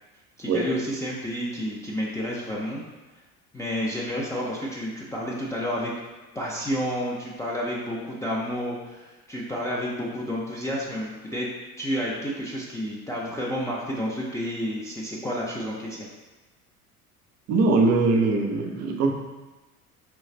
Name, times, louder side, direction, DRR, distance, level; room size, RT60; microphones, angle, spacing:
voice 1, 0.4-2.8 3.5-5.9 6.3-11.5 11.8-16.1, equal, 5° left, -6 dB, 0.5 m, -30 dB
voice 2, 17.5-19.1, right 3 dB, 35° right, 1 dB, 0.6 m, -21 dB
3.4 x 3.1 x 4.1 m, 1.1 s
figure-of-eight pair, 65°, 45 cm